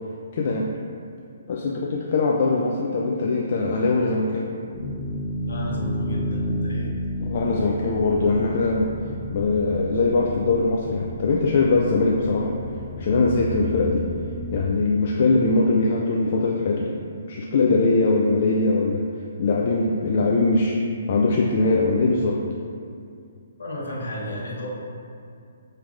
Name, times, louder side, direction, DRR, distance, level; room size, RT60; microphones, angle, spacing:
voice 1, 0.3-0.7 1.5-4.5 7.3-8.9 9.3-12.6 13.0-14.1 14.5-16.9 17.3-19.1 19.4-20.8 21.1-22.4, left 3 dB, 50° left, -2 dB, 0.3 m, -21 dB
sound 1, 4.7-14.7, equal, 30° left, 0.8 m, -32 dB
voice 2, 5.4-6.9 23.6-24.7, left 1 dB, 70° left, -4 dB, 1.0 m, -33 dB
5.9 x 3.2 x 2.4 m, 2.4 s
figure-of-eight pair, 130°, 0 cm